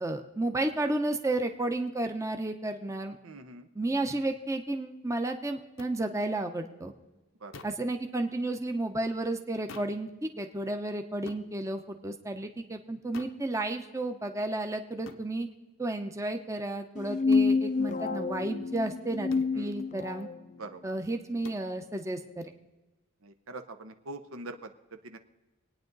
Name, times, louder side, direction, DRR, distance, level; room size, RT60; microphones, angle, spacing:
voice 1, 0.0-3.2 3.7-6.9 7.6-15.5 15.8-19.3 19.6-20.3 20.8-22.5, right 2 dB, 15° right, 5 dB, 0.8 m, -32 dB
voice 2, 3.2-3.7 7.4-7.6 19.5-19.7 20.6-20.8 23.2-25.2, right 2 dB, 85° right, 8 dB, 1.0 m, -43 dB
sound 1, 5.8-5.9 7.5-7.9 9.7-10.0 11.3-11.5 13.1-13.4 15.1-15.3 17.3-17.5 19.3-19.6 21.4-21.7, left 4 dB, 70° left, 0.9 m, -47 dB
sound 2, 17.0-20.4, left 4 dB, 35° left, 0.5 m, -28 dB
25.0 x 9.4 x 4.0 m, 1.1 s
head